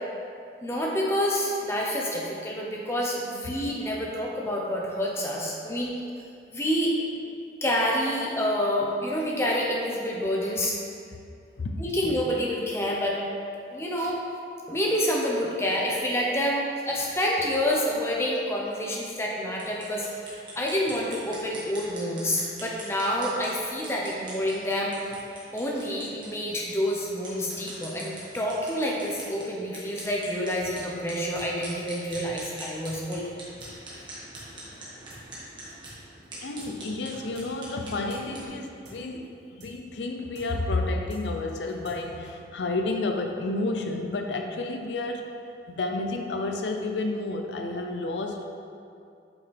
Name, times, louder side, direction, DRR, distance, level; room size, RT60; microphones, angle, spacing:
voice 1, 0.6-6.0 6.5-7.0 7.6-10.8 11.8-13.2 13.7-14.3 14.7-24.9 25.5-33.2, equal, 15° left, -3 dB, 0.8 m, -28 dB
voice 2, 11.6-12.1 36.4-45.3 45.7-48.5, left 2 dB, 80° left, 4 dB, 0.5 m, -31 dB
sound 1, 19.6-38.5, right 1 dB, 25° right, 1.6 m, -44 dB
sound 2, 30.6-30.7 31.0-31.1 31.3-31.5 31.7-31.8 32.1-32.2 32.5-32.6 32.8-33.0 33.2-33.3 33.6-33.7 34.0-34.1 34.3-34.5 34.7-34.8 35.1-35.2 35.5-36.0 36.2-36.3 36.6-36.7 37.0-37.1 37.3-37.5 37.7-37.8 38.1-38.2 38.5-38.6 38.8-39.0 39.2-39.3 39.6-39.7 40.0-40.1 40.3-40.5 40.7-40.8 41.1-41.2 41.5-42.0 42.2-42.3, right 1 dB, 70° right, 1.6 m, -49 dB
8.2 x 5.7 x 3.5 m, 2.5 s
head